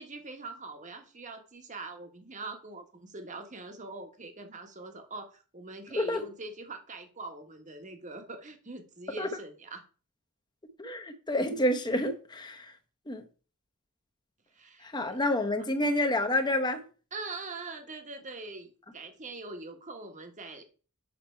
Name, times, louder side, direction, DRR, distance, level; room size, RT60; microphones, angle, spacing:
voice 1, 0.0-9.8 14.5-15.2 17.1-20.6, right 3 dB, 35° right, 1.3 m, -43 dB
voice 2, 6.0-6.3 9.2-9.3 10.8-12.7 13.1-13.2 14.8-16.8, left 1 dB, 20° left, 1.0 m, -29 dB
7.8 x 5.9 x 4.5 m
head